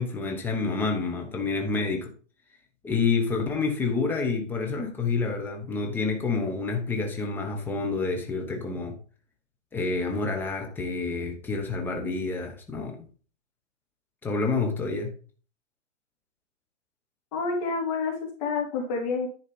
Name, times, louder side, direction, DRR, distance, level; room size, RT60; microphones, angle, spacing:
voice 1, 0.0-2.1 2.8-9.0 9.7-13.1 14.2-15.1, left 4 dB, 5° left, 0.9 m, -28 dB
voice 2, 17.3-19.3, left 4 dB, 30° left, 2.5 m, -28 dB
10.5 x 4.1 x 5.3 m
hypercardioid pair, 150°, 38 cm